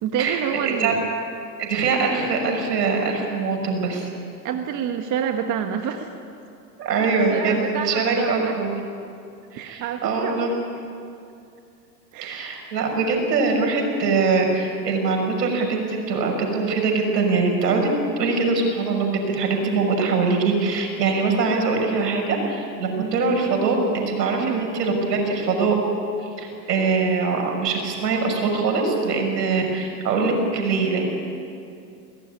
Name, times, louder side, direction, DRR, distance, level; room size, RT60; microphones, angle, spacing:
voice 1, 0.0-1.1 4.4-6.1 7.3-8.5 9.5-10.6 12.1-12.5 22.9-23.1 24.4-24.7, right 8 dB, 40° right, 5 dB, 1.6 m, -28 dB
voice 2, 1.6-4.1 6.8-8.7 9.5-10.5 12.2-17.9 18.2-25.7 26.2-31.0, right 4 dB, 75° right, 2 dB, 6.2 m, -23 dB
22.0 x 18.0 x 9.8 m, 2.5 s
hypercardioid pair, 100°, 49 cm